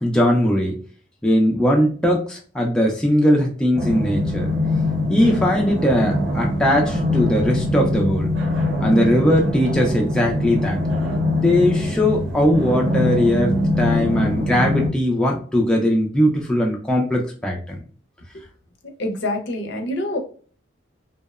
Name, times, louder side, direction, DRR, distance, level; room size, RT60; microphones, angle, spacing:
voice 1, 0.0-0.7 1.2-4.5 5.1-8.3 8.8-10.8 11.4-17.8, equal, 5° left, -1 dB, 0.3 m, -19 dB
sound 1, 3.7-14.9, left 1 dB, 75° right, 0.7 m, -23 dB
voice 2, 19.0-20.2, left 1 dB, 65° left, 4 dB, 0.6 m, -26 dB
2.7 x 2.0 x 2.3 m, 0.41 s
head